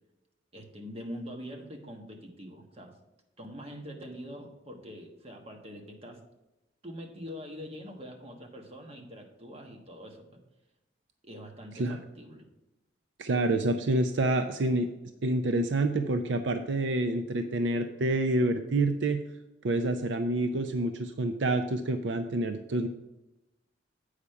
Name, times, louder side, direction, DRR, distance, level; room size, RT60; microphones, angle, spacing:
voice 1, 0.5-3.0 3.4-6.2 6.8-10.4 11.2-12.4, equal, 35° right, 2 dB, 1.3 m, -44 dB
voice 2, 13.2-14.9 15.2-19.2 19.6-22.9, right 2 dB, 70° right, 8 dB, 0.5 m, -28 dB
8.3 x 5.0 x 5.7 m, 0.96 s
head